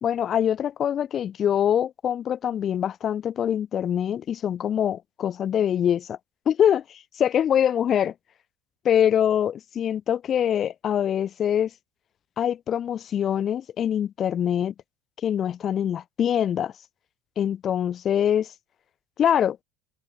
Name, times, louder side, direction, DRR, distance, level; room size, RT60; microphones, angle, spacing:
voice 1, 0.0-6.2 6.5-8.1 8.8-11.7 12.4-14.7 15.2-16.7 17.4-18.5 19.2-19.6, left 9 dB, 45° left, 2.0 m, -24 dB
hypercardioid pair, 65°, 0 cm